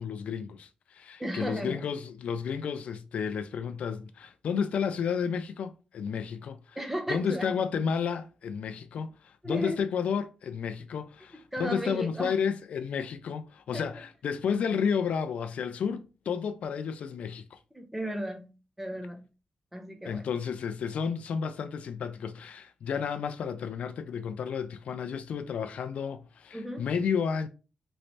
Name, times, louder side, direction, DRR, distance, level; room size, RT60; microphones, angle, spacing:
voice 1, 0.0-6.8 7.1-17.6 20.0-27.5, left 6 dB, 75° left, 0.3 m, -32 dB
voice 2, 1.2-1.8 6.8-7.6 9.4-9.8 11.5-12.3 13.7-14.0 17.7-18.5 18.8-19.2 19.7-20.2 26.5-26.9, equal, 5° right, 0.7 m, -35 dB
3.1 x 3.1 x 2.7 m
wide cardioid pair, 135°, 2 cm